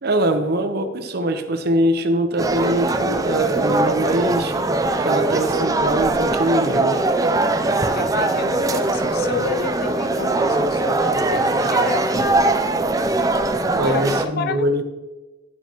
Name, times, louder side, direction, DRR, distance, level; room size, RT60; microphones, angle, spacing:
voice 1, 0.0-4.5 5.0-7.0 13.7-14.9, right 1 dB, 55° right, 0.8 m, -22 dB
sound 1, 2.4-14.3, right 2 dB, 20° right, 0.4 m, -21 dB
voice 2, 7.9-12.4 13.8-14.9, left 6 dB, 55° left, 0.3 m, -30 dB
11.5 x 7.2 x 2.9 m
head